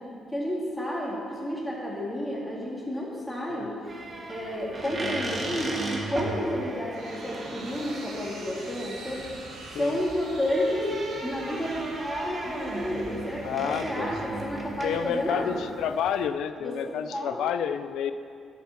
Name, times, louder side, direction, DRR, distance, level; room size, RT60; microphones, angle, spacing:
voice 1, 0.0-3.8 4.3-5.8 6.1-9.3 9.8-10.9 11.2-15.5 16.6-17.4, equal, 10° left, -5 dB, 3.4 m, -31 dB
sound 1, 3.8-16.3, right 2 dB, 30° right, 2.1 m, -36 dB
sound 2, 6.6-14.4, right 2 dB, 75° right, 2.6 m, -45 dB
voice 2, 13.4-14.1 14.8-18.1, left 8 dB, 80° left, 11 dB, 0.5 m, -29 dB
11.0 x 7.9 x 7.2 m, 2.3 s
cardioid pair, 90°, 0 cm